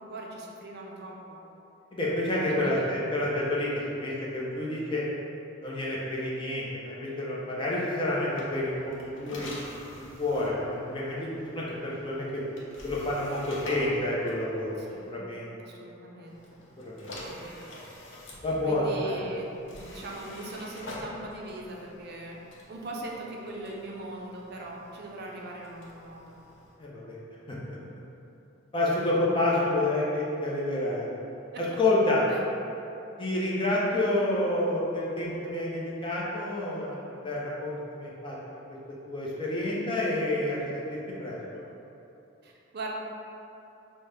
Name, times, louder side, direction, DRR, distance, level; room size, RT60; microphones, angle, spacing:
voice 1, 0.0-1.4 2.5-2.9 14.8-15.1 15.6-16.4 17.2-17.7 18.6-22.4 22.7-26.3 29.0-29.4 31.5-31.6 32.3-32.4 42.4-42.9, right 2 dB, 55° right, -2 dB, 0.5 m, -40 dB
voice 2, 1.9-3.7 4.0-5.0 5.6-9.5 10.2-12.4 12.8-15.5 16.8-17.1 18.4-19.2 26.8-27.2 27.5-27.8 28.7-31.1 31.6-32.2 33.2-38.4 38.7-38.8 39.0-41.4, left 1 dB, 25° left, -6 dB, 0.6 m, -29 dB
sound 1, 8.3-15.2 16.2-26.8, left 1 dB, 65° left, 0.7 m, -46 dB
5.3 x 2.1 x 3.3 m, 2.9 s
head